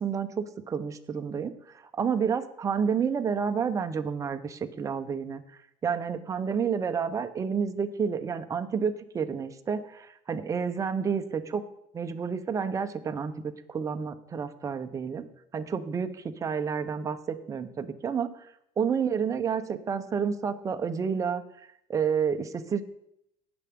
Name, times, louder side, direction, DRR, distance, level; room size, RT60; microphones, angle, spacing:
voice 1, 0.0-1.5 2.0-5.4 5.8-11.6 11.9-15.3 15.5-18.3 18.8-21.4 21.9-22.8, right 6 dB, 25° right, 7 dB, 0.8 m, -30 dB
18.0 x 7.0 x 3.7 m, 0.77 s
cardioid pair, 135°, 13 cm